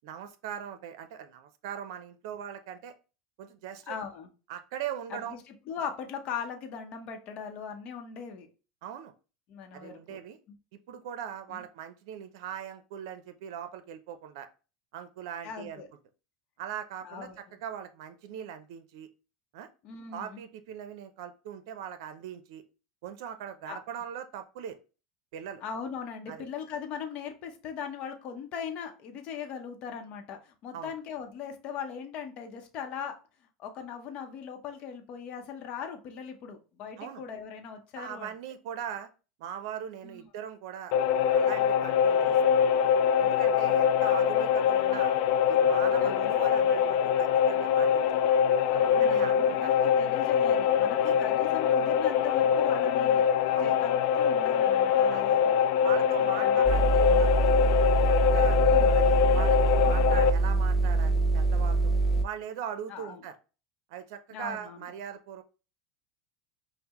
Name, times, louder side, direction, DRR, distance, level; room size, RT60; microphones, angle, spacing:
voice 1, 0.0-2.9 3.4-4.0 4.5-5.4 8.8-9.1 9.7-10.4 10.9-14.5 14.9-15.8 16.6-19.1 19.5-19.7 20.1-22.6 23.0-24.8 25.3-25.6 26.3-26.5 30.7-30.9 37.0-37.2 38.0-39.1 39.4-40.9 41.3-42.6 43.2-45.2 45.5-48.2 49.0-49.9 51.1-51.2 53.5-53.8 55.1-55.4 55.8-57.7 58.1-58.6 58.9-61.9 62.2-63.4 63.9-65.4, right 9 dB, 70° right, 10 dB, 0.6 m, -40 dB
voice 2, 3.9-4.3 5.1-8.5 9.5-10.2 11.5-11.6 15.4-15.9 17.0-17.4 19.8-20.4 23.7-23.8 25.6-33.2 33.6-38.3 40.0-40.2 46.0-46.4 48.7-53.3 53.6-55.5 56.4-56.6 58.6-59.0 62.9-63.2 64.3-64.8, left 7 dB, 50° left, 4 dB, 0.7 m, -39 dB
sound 1, 40.9-60.3, left 8 dB, 65° left, 0.3 m, -24 dB
sound 2, 56.6-62.2, right 3 dB, ahead, 0.5 m, -24 dB
5.4 x 2.1 x 3.0 m, 0.33 s
supercardioid pair, 120°, 3 cm